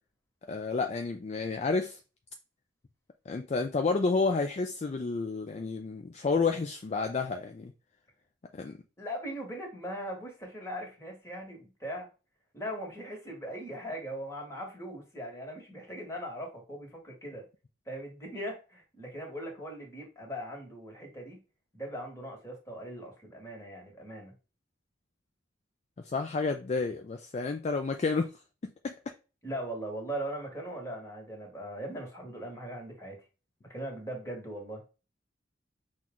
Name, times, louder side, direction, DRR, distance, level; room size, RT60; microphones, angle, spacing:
voice 1, 0.5-2.0 3.3-7.7 8.5-8.8 26.1-28.3 28.6-28.9, left 4 dB, 35° left, 0.4 m, -30 dB
voice 2, 9.0-12.1 12.5-17.4 17.9-21.4 21.7-24.3 29.4-33.2 33.7-34.8, equal, 15° left, 1.6 m, -40 dB
6.0 x 2.4 x 3.7 m
head